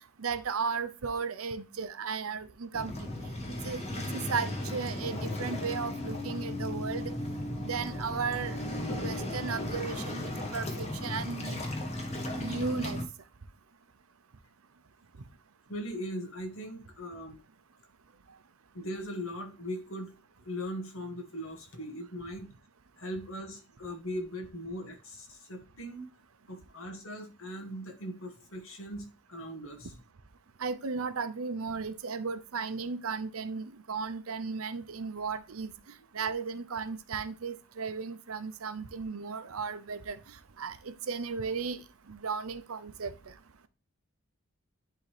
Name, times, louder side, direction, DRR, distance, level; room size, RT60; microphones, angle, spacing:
voice 1, 0.2-3.1 3.6-3.9 4.1-7.1 7.6-8.6 8.9-11.6 12.4-13.0 30.6-35.7 36.1-40.2 40.6-41.8 42.1-43.1, right 5 dB, 80° right, 0.7 m, -35 dB
Waves surf, 2.7-13.0, left 1 dB, 30° left, 1.5 m, -35 dB
voice 2, 15.7-17.4 18.7-20.1 20.4-22.5 23.0-26.1 26.5-29.9 36.2-36.3, equal, 70° left, 1.8 m, -39 dB
10.5 x 3.8 x 3.3 m
head